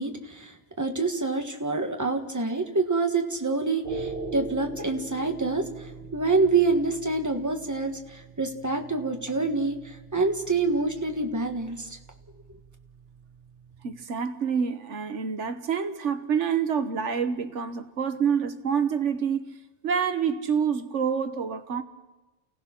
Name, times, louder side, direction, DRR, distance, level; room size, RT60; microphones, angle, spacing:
voice 1, 0.0-12.0, right 3 dB, 15° right, 1.6 m, -27 dB
sound 1, 3.8-14.0, right 3 dB, 50° right, 1.7 m, -42 dB
voice 2, 13.8-21.8, right 7 dB, 85° right, 1.5 m, -27 dB
29.5 x 17.0 x 5.9 m
omnidirectional pair, 1.2 m